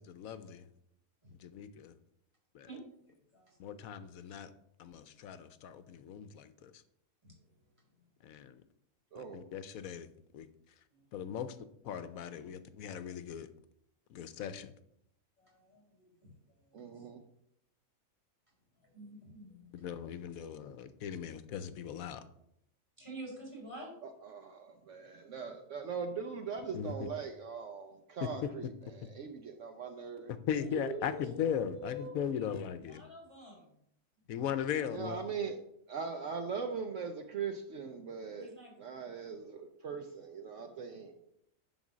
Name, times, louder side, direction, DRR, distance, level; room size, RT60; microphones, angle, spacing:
voice 1, 0.1-0.6 1.4-1.9 2.5-2.7 3.6-4.5 4.8-6.7 8.2-8.6 9.2-10.1 10.3-10.5 11.1-11.6 11.8-13.5 14.1-14.7 19.8-22.2 26.7-26.9 28.2-28.3 30.3-33.0 34.3-35.2, left 9 dB, 80° left, 12 dB, 1.0 m, -38 dB
voice 2, 3.1-3.8 7.2-7.4 10.9-11.1 15.4-16.3 16.6-17.1 18.9-19.9 23.0-24.0 30.6-32.5 32.8-33.7 38.4-38.7, right 1 dB, 20° right, -2 dB, 3.5 m, -46 dB
voice 3, 16.7-17.2 20.4-20.6 24.0-30.3 34.9-35.6 35.9-41.1, right 5 dB, 65° right, 5 dB, 1.0 m, -41 dB
10.5 x 3.8 x 6.1 m, 0.75 s
omnidirectional pair, 1.5 m